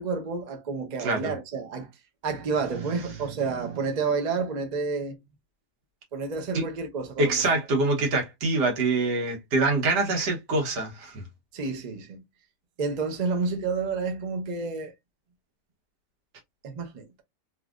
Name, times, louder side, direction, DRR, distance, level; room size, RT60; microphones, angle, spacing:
voice 1, 0.0-1.9 2.2-5.2 6.1-7.5 11.5-12.2 12.8-14.9 16.6-17.1, right 4 dB, 60° right, 0.4 m, -30 dB
voice 2, 1.0-1.3 6.5-6.6 7.2-11.2, right 2 dB, 75° right, 1.6 m, -25 dB
3.2 x 2.6 x 2.3 m
omnidirectional pair, 1.8 m